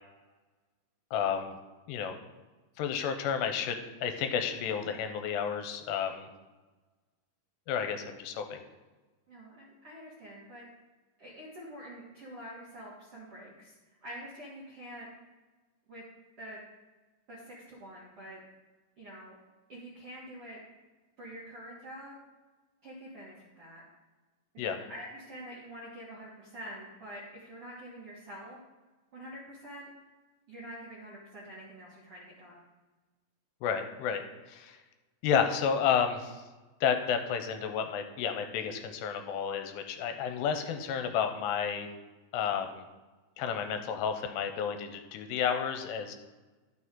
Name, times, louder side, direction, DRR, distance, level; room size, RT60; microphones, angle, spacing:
voice 1, 1.1-1.5 1.9-2.1 2.8-3.8 4.0-6.3 7.7-8.6 24.6-24.8 33.6-34.2 34.5-34.8 35.2-36.4 36.8-41.9 42.3-42.8 43.4-46.2, left 7 dB, 80° left, 7 dB, 2.7 m, -31 dB
voice 2, 9.3-10.6 11.2-15.1 15.9-16.0 16.4-16.6 17.3-18.4 19.0-19.4 19.7-20.6 21.2-22.2 22.8-23.8 24.5-28.6 29.1-29.9 30.5-32.6, equal, 60° right, -7 dB, 1.5 m, -46 dB
12.0 x 6.1 x 3.7 m, 1.2 s
omnidirectional pair, 5.0 m